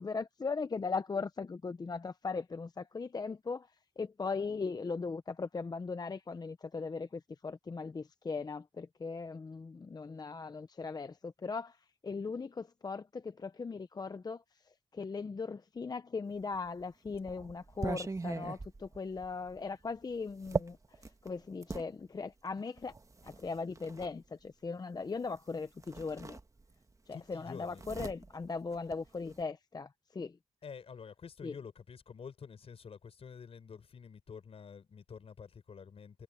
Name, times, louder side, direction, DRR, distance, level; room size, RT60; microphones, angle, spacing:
voice 1, 0.0-22.9 23.2-26.4 27.1-30.4 31.4-31.5, left 4 dB, 40° left, 0.8 m, -39 dB
sound 1, 16.5-21.9 22.8-24.1 25.4-25.5 25.8-26.9 27.2-29.4, right 3 dB, 30° right, 1.4 m, -40 dB
voice 2, 27.1-27.8 30.6-36.2, left 6 dB, 65° left, 4.8 m, -49 dB
cardioid pair, 75°, 11 cm